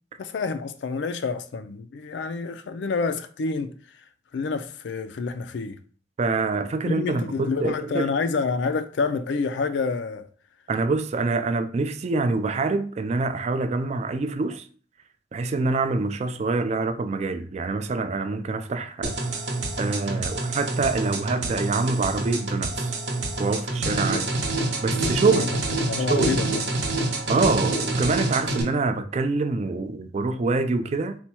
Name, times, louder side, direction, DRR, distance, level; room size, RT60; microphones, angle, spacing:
voice 1, 0.2-3.7 4.3-5.8 6.8-10.3 25.3-25.5 25.9-26.6, left 4 dB, 85° left, 0.4 m, -28 dB
voice 2, 6.2-8.1 10.7-14.6 15.3-19.2 19.8-22.9 23.4-24.3 24.8-25.5 26.1-26.4 27.3-31.2, right 3 dB, 40° right, 0.4 m, -25 dB
sound 1, 19.0-28.6, right 2 dB, 90° right, 0.9 m, -27 dB
4.2 x 2.2 x 4.3 m
head